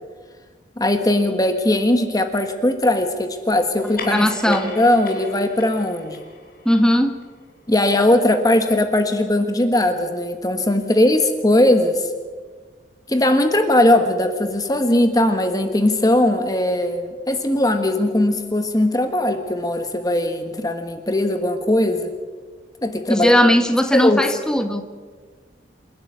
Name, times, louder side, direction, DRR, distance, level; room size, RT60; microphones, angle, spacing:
voice 1, 0.8-6.2 7.7-12.1 13.1-22.1 22.8-23.4 23.9-24.2, left 1 dB, 20° left, 7 dB, 1.4 m, -19 dB
sound 1, 3.7-8.6, left 3 dB, 55° left, 4.8 m, -39 dB
voice 2, 4.0-4.7 6.6-7.1 23.1-24.8, equal, 5° left, 6 dB, 1.6 m, -18 dB
28.5 x 12.0 x 9.5 m, 1.5 s
head